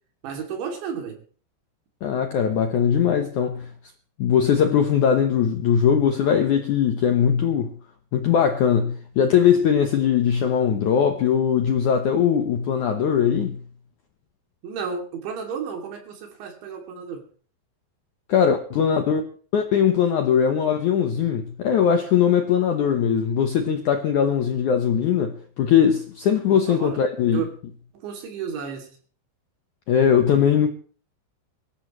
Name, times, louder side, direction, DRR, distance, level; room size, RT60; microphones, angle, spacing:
voice 1, 0.2-1.2 14.6-17.2 26.5-27.0 27.3-27.5 27.9-28.9, right 6 dB, 80° right, 5.1 m, -32 dB
voice 2, 2.0-3.7 4.2-7.7 8.1-13.6 18.3-19.2 19.5-27.5 29.9-30.7, left 8 dB, 75° left, 1.8 m, -20 dB
24.5 x 13.0 x 3.2 m
omnidirectional pair, 5.1 m